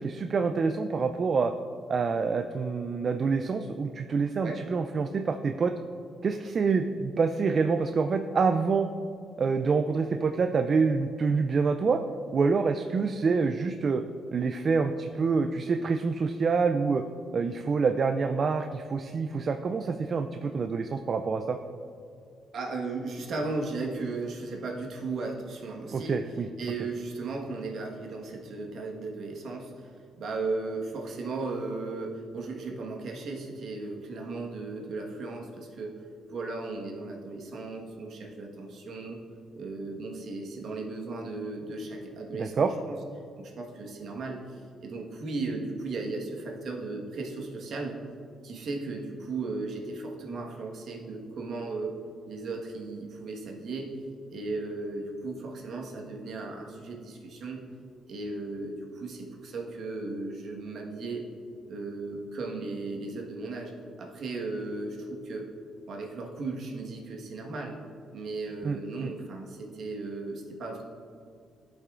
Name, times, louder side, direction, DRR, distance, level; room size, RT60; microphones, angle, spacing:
voice 1, 0.0-1.5 1.9-5.7 6.2-8.9 9.4-12.0 12.3-14.0 14.3-17.0 17.3-21.6 25.9-26.5 42.3-42.7 68.6-69.1, right 5 dB, 45° right, 6 dB, 0.3 m, -26 dB
voice 2, 22.5-26.2 26.6-29.9 30.2-36.0 36.3-39.2 39.5-43.0 43.4-48.0 48.4-52.0 52.3-53.9 54.3-57.6 58.1-61.2 61.7-63.7 64.0-65.5 65.9-67.8 68.1-70.8, right 3 dB, 65° right, 0 dB, 1.3 m, -36 dB
13.5 x 5.6 x 2.5 m, 2.3 s
cardioid pair, 90°, 0 cm